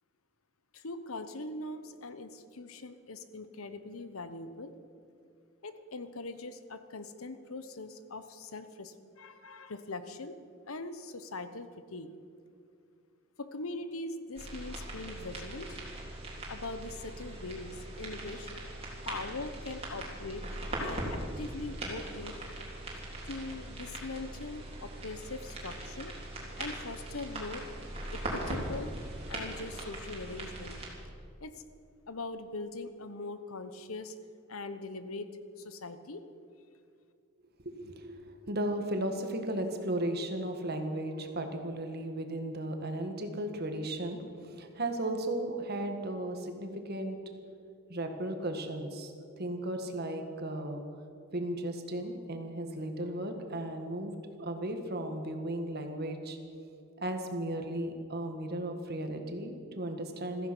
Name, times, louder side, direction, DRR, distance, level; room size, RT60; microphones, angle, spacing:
voice 1, 0.7-4.7 5.6-10.4 10.7-12.1 13.4-15.8 16.5-18.5 19.1-20.4 20.8-22.4 23.2-26.1 26.6-27.7 28.1-28.9 29.3-30.8 31.4-31.6 32.1-34.1 34.5-35.3 35.6-36.3, left 2 dB, 80° left, 11 dB, 1.0 m, -41 dB
sound 1, 14.3-30.9, right 1 dB, 30° right, 3.6 m, -40 dB
voice 2, 37.6-47.2 47.9-50.8 51.3-54.1 54.4-56.4 57.0-60.5, right 1 dB, 50° right, 5 dB, 1.7 m, -35 dB
16.0 x 14.5 x 6.2 m, 2.4 s
head